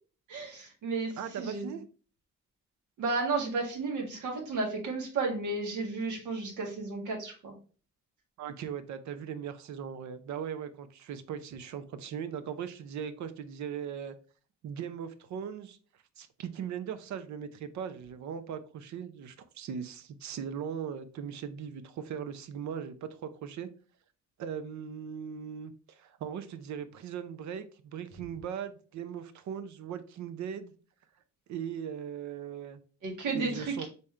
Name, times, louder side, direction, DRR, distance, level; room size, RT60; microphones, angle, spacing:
voice 1, 0.3-1.1 1.4-1.7 3.0-7.5 33.0-33.6, right 3 dB, 85° right, 0 dB, 1.7 m, -33 dB
voice 2, 1.2-1.8 8.4-14.1 14.6-15.8 16.2-23.7 24.4-30.7 31.5-32.8 33.3-33.9, right 8 dB, 70° right, 12 dB, 0.7 m, -39 dB
4.2 x 3.6 x 3.2 m, 0.38 s
cardioid pair, 90°, 30 cm